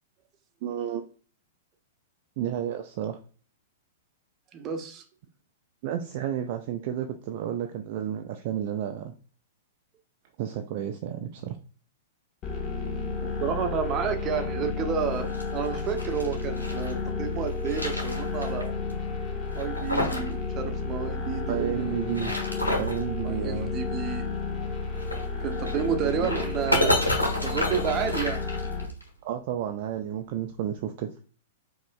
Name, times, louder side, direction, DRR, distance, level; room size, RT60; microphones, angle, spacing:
voice 1, 0.6-1.0 2.4-3.2 5.8-9.1 10.4-11.6 21.5-22.3 22.8-23.7 26.0-26.3 29.2-31.1, right 10 dB, 45° right, 5 dB, 0.4 m, -31 dB
voice 2, 4.5-5.0 13.2-18.7 19.5-22.0 23.2-24.3 25.4-26.9 27.4-28.4, right 8 dB, 30° right, 5 dB, 0.8 m, -30 dB
sound 1, 12.4-28.9, left 4 dB, 35° left, 0.9 m, -32 dB
sound 2, 15.1-16.9 17.4-18.6 18.9-19.0 19.5-20.3 20.6-20.7 21.9-23.0 24.9-29.0, left 1 dB, 85° left, 1.4 m, -30 dB
5.0 x 2.8 x 2.4 m, 0.40 s
figure-of-eight pair, 105°, 0 cm